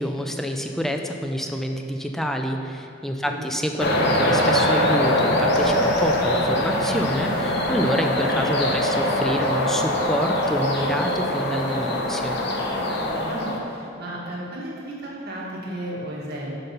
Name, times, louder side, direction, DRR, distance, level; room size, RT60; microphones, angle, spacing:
voice 1, 0.0-12.4, equal, ahead, 4 dB, 0.4 m, -27 dB
sound 1, 3.8-13.6, left 1 dB, 60° left, 0.9 m, -23 dB
voice 2, 13.0-16.5, right 1 dB, 55° right, -5 dB, 1.6 m, -34 dB
5.9 x 5.2 x 5.6 m, 2.5 s
head